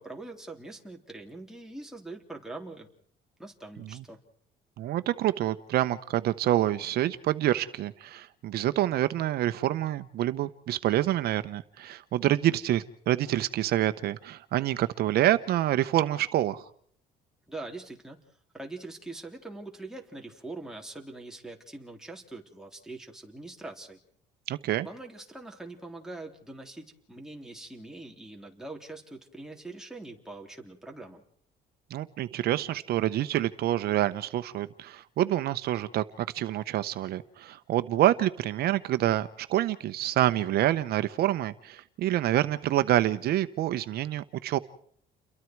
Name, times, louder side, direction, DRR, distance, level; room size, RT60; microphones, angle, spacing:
voice 1, 0.0-2.9 3.4-4.2 17.5-18.2 18.5-24.0 24.8-31.2, right 2 dB, 5° right, 1 dB, 3.7 m, -43 dB
voice 2, 4.8-16.6 24.5-24.9 31.9-44.6, right 13 dB, 70° right, 12 dB, 1.0 m, -27 dB
30.0 x 23.0 x 4.7 m, 0.63 s
cardioid pair, 110°, 17 cm